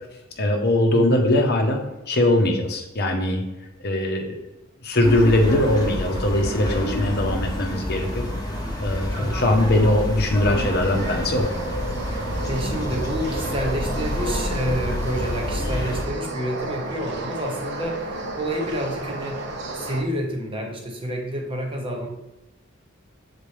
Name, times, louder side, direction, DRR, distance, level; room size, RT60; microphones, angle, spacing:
voice 1, 0.4-1.8 2.1-3.4 3.8-4.4 4.8-8.3 8.8-11.5, left 1 dB, 50° left, 2 dB, 0.9 m, -21 dB
voice 2, 0.9-1.3 9.1-9.8 12.2-19.4 19.7-22.1, equal, 25° right, 2 dB, 0.9 m, -29 dB
sound 1, 5.0-16.1, left 1 dB, 20° left, 1.0 m, -28 dB
sound 2, 10.5-20.0, right 2 dB, 55° right, 0.9 m, -32 dB
6.9 x 4.1 x 3.3 m, 1.0 s
head